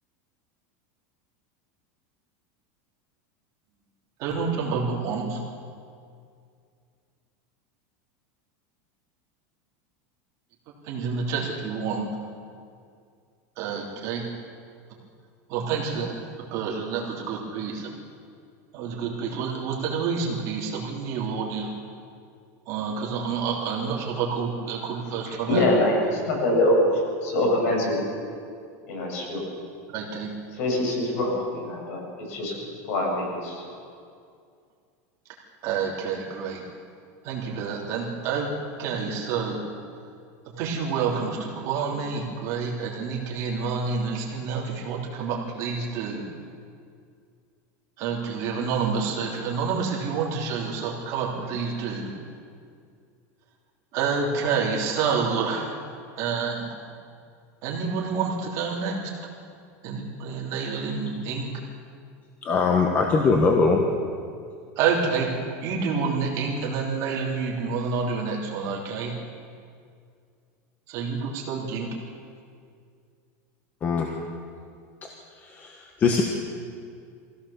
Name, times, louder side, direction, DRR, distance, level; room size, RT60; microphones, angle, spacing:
voice 1, 4.2-5.4 10.8-12.1 13.6-14.2 15.5-16.1 16.5-17.9 18.7-21.7 22.7-25.7 27.5-27.6 29.9-30.3 35.6-36.6 37.2-38.5 38.8-39.6 40.5-46.2 48.0-52.1 53.9-55.7 56.1-56.7 57.6-59.1 59.8-61.5 64.8-65.3 65.6-69.1 70.9-71.9, right 5 dB, 40° right, -2 dB, 3.3 m, -28 dB
voice 2, 25.5-26.8 27.2-28.0 28.9-29.4 30.6-32.0 32.3-32.5 32.9-33.6, left 1 dB, 70° left, -1 dB, 7.5 m, -24 dB
voice 3, 62.4-64.0 73.8-74.1 76.0-76.2, left 4 dB, 20° left, 2 dB, 1.3 m, -20 dB
23.5 x 16.0 x 7.2 m, 2.3 s
supercardioid pair, 170°, 8 cm